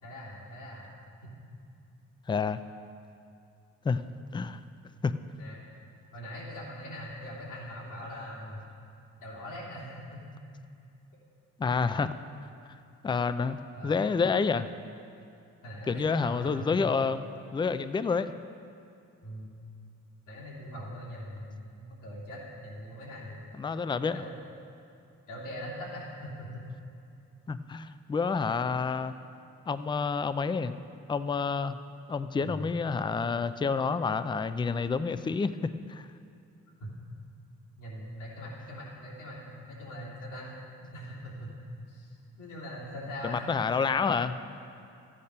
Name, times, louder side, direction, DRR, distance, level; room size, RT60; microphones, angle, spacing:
voice 1, 0.0-0.9 1.2-1.3 5.4-5.6 6.1-8.6 9.2-10.2 13.7-14.0 15.6-16.7 19.2-19.5 20.3-23.4 24.1-24.3 25.3-26.6 32.4-32.7 36.8-36.9 37.8-40.5 40.8-41.5 41.9-43.4, equal, 80° left, -5 dB, 3.3 m, -41 dB
voice 2, 2.3-2.6 3.8-4.0 4.3-4.6 5.0-5.1 11.6-12.1 13.0-14.7 15.9-18.3 23.6-24.2 27.5-29.1 29.7-30.8 31.1-31.8 32.1-36.1 43.2-44.4, left 5 dB, 15° left, 12 dB, 0.4 m, -29 dB
13.5 x 8.7 x 5.5 m, 2.5 s
cardioid pair, 90°, 30 cm